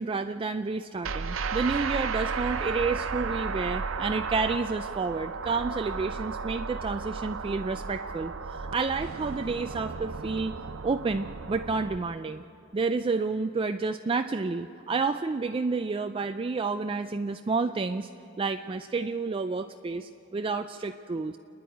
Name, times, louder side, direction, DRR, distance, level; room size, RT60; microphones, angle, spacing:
voice 1, 0.0-10.6 10.8-12.4 12.7-18.1 18.4-21.4, right 4 dB, 25° right, 8 dB, 0.4 m, -30 dB
sound 1, 1.0-12.0, right 5 dB, 75° right, 0.7 m, -34 dB
29.0 x 10.0 x 9.2 m, 2.9 s
head